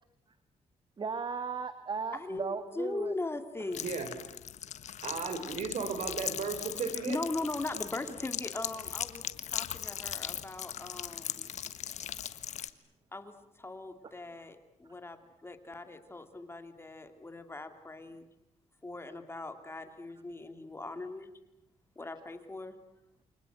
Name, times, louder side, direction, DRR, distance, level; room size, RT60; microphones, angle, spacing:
voice 1, 1.0-3.1 14.0-14.1, right 5 dB, 40° right, 10 dB, 1.8 m, -36 dB
voice 2, 2.1-3.9 6.8-9.2 9.5-11.5 13.1-18.3 18.8-21.3 22.0-22.8, left 2 dB, 20° left, 7 dB, 2.7 m, -40 dB
sound 1, 3.7-12.7, left 10 dB, 70° left, 1.4 m, -39 dB
voice 3, 5.0-7.2, right 5 dB, 70° right, 10 dB, 4.7 m, -35 dB
29.0 x 25.0 x 8.1 m, 0.88 s
cardioid pair, 90°, 12 cm